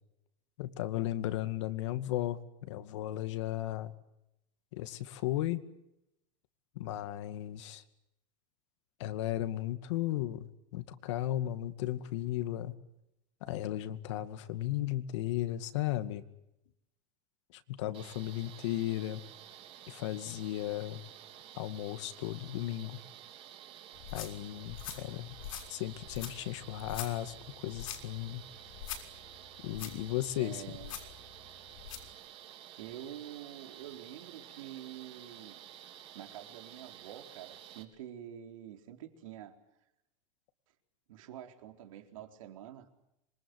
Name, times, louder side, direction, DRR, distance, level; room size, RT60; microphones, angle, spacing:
voice 1, 0.6-3.9 4.7-5.7 6.8-7.8 9.0-12.7 13.4-16.2 17.5-19.2 19.9-21.0 21.6-23.0 24.1-25.4 25.7-27.3 27.6-28.4 29.6-30.6, left 14 dB, 60° left, 11 dB, 2.2 m, -35 dB
sound 1, 17.9-37.8, right 11 dB, 35° right, 3.4 m, -52 dB
sound 2, 23.9-32.1, left 9 dB, 85° left, 6.4 m, -45 dB
voice 2, 30.4-31.2 32.8-35.6 36.1-39.6 41.1-42.9, right 11 dB, 80° right, 5 dB, 4.2 m, -47 dB
26.5 x 24.0 x 8.1 m, 0.85 s
supercardioid pair, 175°, 17 cm